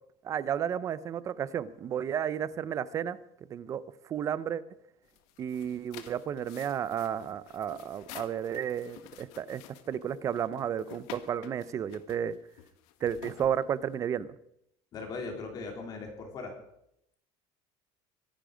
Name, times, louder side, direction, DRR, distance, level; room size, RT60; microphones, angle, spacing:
voice 1, 0.2-3.2 3.5-3.8 4.1-4.6 5.4-9.6 9.9-12.4 13.0-14.3, right 9 dB, 25° right, 17 dB, 0.5 m, -32 dB
sound 1, 5.0-14.2, left 11 dB, 75° left, 1.4 m, -50 dB
voice 2, 14.9-16.5, left 3 dB, 30° left, 3 dB, 3.0 m, -39 dB
24.5 x 10.0 x 5.0 m, 0.77 s
cardioid pair, 180°, 13 cm